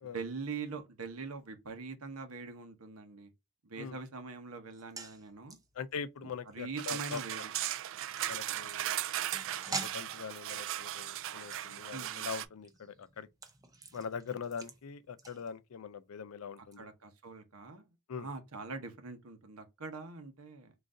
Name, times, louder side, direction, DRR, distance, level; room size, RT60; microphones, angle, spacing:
voice 1, 0.0-3.3 3.6-5.6 6.2-7.5 11.9-12.3 16.6-20.7, right 4 dB, 80° right, 0.9 m, -43 dB
sound 1, 4.7-16.2 16.6-16.8, right 3 dB, 15° right, 0.6 m, -48 dB
voice 2, 5.8-7.4 8.3-9.0 9.5-13.3 13.9-16.9 18.1-18.3, left 6 dB, 80° left, 0.4 m, -42 dB
sound 2, 6.8-12.5, right 13 dB, 60° right, 0.3 m, -37 dB
3.8 x 2.6 x 3.7 m
head